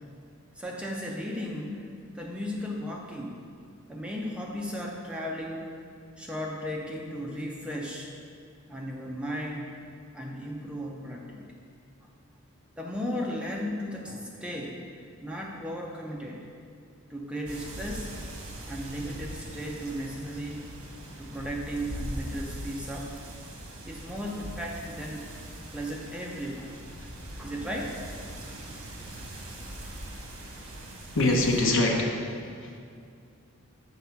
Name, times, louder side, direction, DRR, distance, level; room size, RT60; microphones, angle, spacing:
voice 1, 0.5-3.4 3.9-5.7 6.2-8.1 8.7-9.7 10.1-11.6 12.8-14.9 15.2-16.5 17.1-18.1 18.7-20.8 21.2-23.2 23.9-25.3 25.7-28.0, equal, 5° right, -2 dB, 0.5 m, -35 dB
sound 1, 17.4-31.6, right 1 dB, 70° right, 1.2 m, -41 dB
voice 2, 31.1-32.8, left 2 dB, 60° left, 1 dB, 0.9 m, -25 dB
7.1 x 4.1 x 5.8 m, 2.3 s
head